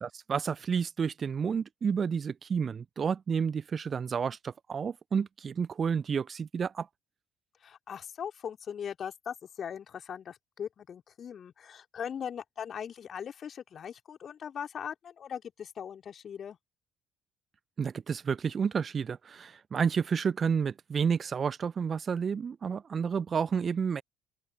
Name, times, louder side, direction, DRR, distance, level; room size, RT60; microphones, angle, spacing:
voice 1, 0.0-6.9 17.8-24.0, right 6 dB, 40° right, 0.4 m, -30 dB
voice 2, 7.6-16.6, left 8 dB, 45° left, 3.0 m, -40 dB
open air
figure-of-eight pair, 50°, 0 cm